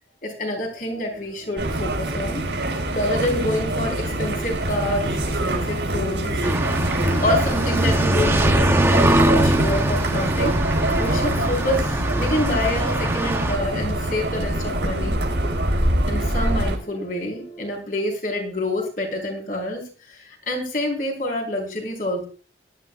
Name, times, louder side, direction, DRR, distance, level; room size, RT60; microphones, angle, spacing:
voice 1, 0.2-2.4 2.9-5.2 5.4-6.5 7.2-10.6 11.0-15.2 16.1-22.2, left 1 dB, 50° left, 1 dB, 4.4 m, -27 dB
sound 1, 0.7-17.7, equal, 75° left, 5.7 m, -45 dB
sound 2, 1.6-16.8, right 1 dB, 85° right, 4.3 m, -24 dB
sound 3, 6.4-13.6, right 1 dB, 15° right, 0.7 m, -23 dB
18.5 x 12.0 x 2.5 m, 0.37 s
head